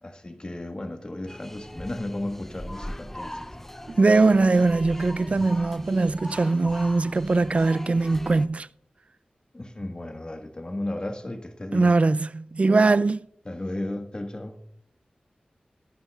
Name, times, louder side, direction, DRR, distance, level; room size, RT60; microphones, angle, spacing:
voice 1, 0.0-3.4 9.5-11.9 13.4-14.6, left 1 dB, 30° left, 1.4 m, -34 dB
sound 1, 1.3-8.5, left 1 dB, 10° left, 0.5 m, -39 dB
voice 2, 3.9-8.7 11.7-13.2, right 3 dB, 50° right, 0.3 m, -21 dB
20.5 x 11.0 x 2.3 m
wide cardioid pair, 80°, 3 cm